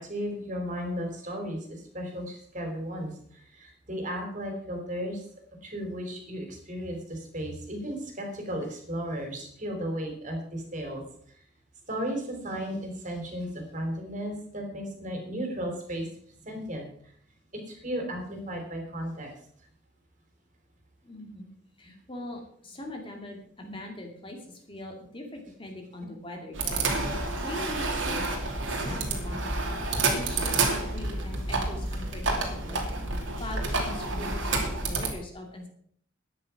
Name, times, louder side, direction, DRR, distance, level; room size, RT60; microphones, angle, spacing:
voice 1, 0.0-5.2 5.6-11.0 11.9-16.1 16.4-16.8 17.7-19.3 23.6-23.8 29.7-29.8, equal, 40° right, 3 dB, 3.6 m, -35 dB
voice 2, 21.0-21.5 21.8-28.4 28.7-32.9 33.4-35.7, left 1 dB, 25° left, 2 dB, 2.3 m, -42 dB
sound 1, 26.5-35.1, right 3 dB, 70° right, 2.8 m, -29 dB
12.0 x 10.0 x 5.9 m, 0.62 s
head